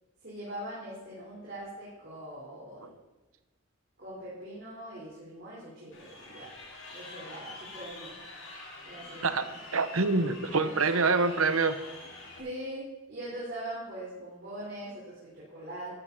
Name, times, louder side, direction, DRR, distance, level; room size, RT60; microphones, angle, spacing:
voice 1, 0.2-2.9 4.0-6.5 6.9-8.1 8.8-9.6 10.4-11.4 12.4-16.0, right 1 dB, 50° right, -7 dB, 3.9 m, -42 dB
Crowd, 5.9-12.4, left 2 dB, 65° left, 3.7 m, -46 dB
voice 2, 9.2-11.8, right 4 dB, 90° right, 11 dB, 1.0 m, -26 dB
14.0 x 12.0 x 4.1 m, 1.1 s
head